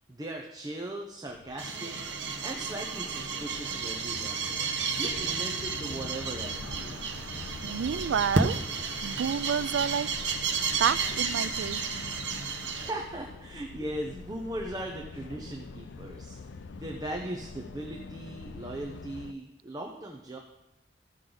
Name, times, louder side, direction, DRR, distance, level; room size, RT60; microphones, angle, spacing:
voice 1, 0.1-2.1 2.4-4.4 4.9-7.0 12.7-16.4 16.7-20.4, right 1 dB, 20° right, 1 dB, 0.7 m, -38 dB
sound 1, 1.3-19.3, left 4 dB, 75° left, 0.5 m, -45 dB
sound 2, 1.6-12.9, right 4 dB, 65° right, 1.0 m, -32 dB
voice 2, 7.6-8.6 9.0-10.1 10.8-11.8, right 7 dB, 85° right, 17 dB, 0.3 m, -29 dB
14.5 x 6.3 x 3.9 m, 0.97 s
head